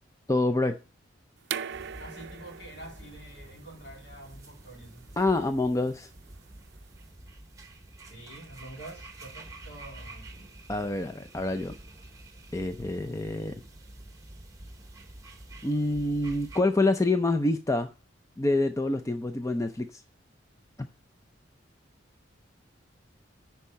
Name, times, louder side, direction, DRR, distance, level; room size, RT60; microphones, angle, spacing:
voice 1, 0.3-0.8 5.2-6.1 10.7-11.8 12.5-13.6 15.6-17.9 18.4-20.0 20.8-20.9, left 2 dB, 15° left, 0.4 m, -27 dB
sound 1, 1.4-7.0, right 8 dB, 60° right, 0.5 m, -42 dB
sound 2, 1.7-16.6, right 2 dB, 15° right, 1.1 m, -48 dB
voice 2, 2.0-5.0 8.1-10.3, right 1 dB, 60° left, 3.4 m, -47 dB
10.0 x 4.7 x 5.1 m
head